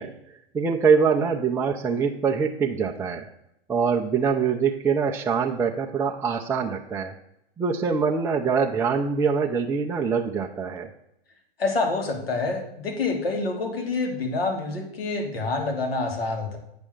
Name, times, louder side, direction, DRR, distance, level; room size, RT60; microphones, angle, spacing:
voice 1, 0.0-3.3 3.7-7.1 7.6-10.9, right 6 dB, 10° right, 1 dB, 0.5 m, -24 dB
voice 2, 11.6-16.6, left 3 dB, 75° left, 3 dB, 2.7 m, -27 dB
8.6 x 5.2 x 6.5 m, 0.79 s
hypercardioid pair, 115°, 30 cm